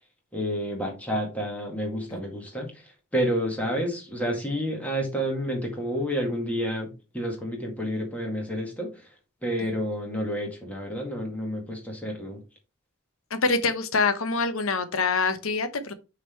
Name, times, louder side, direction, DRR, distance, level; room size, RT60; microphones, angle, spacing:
voice 1, 0.3-2.8 3.1-8.9 9.4-12.4, equal, 5° left, 2.0 m, -29 dB
voice 2, 13.3-15.9, left 4 dB, 80° left, 1.0 m, -25 dB
6.2 x 3.8 x 4.5 m
head